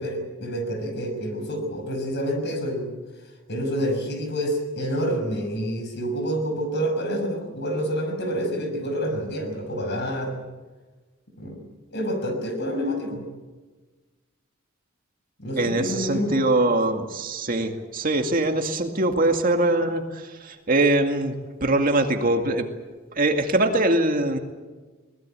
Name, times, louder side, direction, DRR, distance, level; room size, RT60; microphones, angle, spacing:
voice 1, 0.0-2.9 3.5-10.4 11.4-11.6 11.9-13.2 15.4-16.4, equal, 55° left, 6 dB, 6.1 m, -28 dB
voice 2, 15.6-20.0 20.4-21.3 21.6-22.7 23.2-24.4, right 2 dB, 40° right, 5 dB, 2.2 m, -22 dB
22.5 x 20.0 x 9.0 m, 1.3 s
head